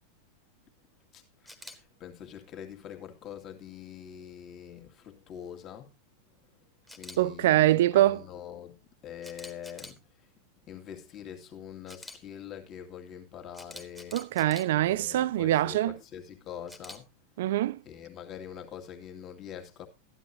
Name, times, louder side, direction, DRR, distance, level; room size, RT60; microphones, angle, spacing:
voice 1, 1.1-5.9 7.0-10.0 10.7-14.2 14.8-17.1 17.9-19.9, left 9 dB, 35° left, 2.2 m, -44 dB
Camera, 1.5-1.8 6.9-7.2 9.2-10.0 11.9-12.2 13.5-14.6 16.7-17.0, left 1 dB, 5° left, 1.6 m, -45 dB
voice 2, 7.2-8.2 14.1-15.9 17.4-17.8, right 14 dB, 55° right, 0.5 m, -24 dB
14.0 x 11.0 x 2.8 m
figure-of-eight pair, 90°, 0 cm